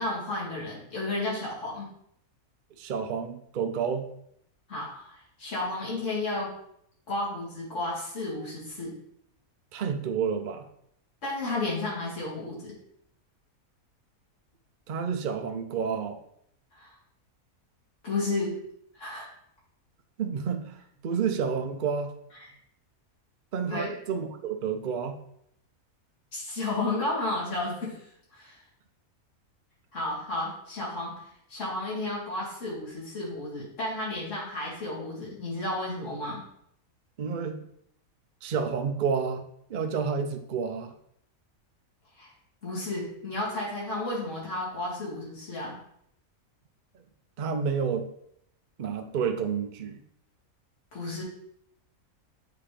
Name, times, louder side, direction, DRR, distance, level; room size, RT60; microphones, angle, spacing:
voice 1, 0.0-1.9 4.7-6.6 7.1-9.0 11.2-12.7 16.7-16.9 18.0-18.6 18.9-19.3 23.7-23.9 26.3-28.0 28.3-28.6 29.9-36.4 42.2-42.3 42.6-45.8 50.9-51.2, left 2 dB, 55° left, -6 dB, 2.6 m, -32 dB
voice 2, 2.8-4.1 9.7-10.7 14.9-16.2 20.2-20.8 21.0-22.1 23.5-25.2 37.2-37.6 38.4-39.4 39.7-40.9 47.4-48.1 48.8-50.0, right 6 dB, 60° right, 6 dB, 0.5 m, -30 dB
7.7 x 3.8 x 3.3 m, 0.71 s
omnidirectional pair, 1.5 m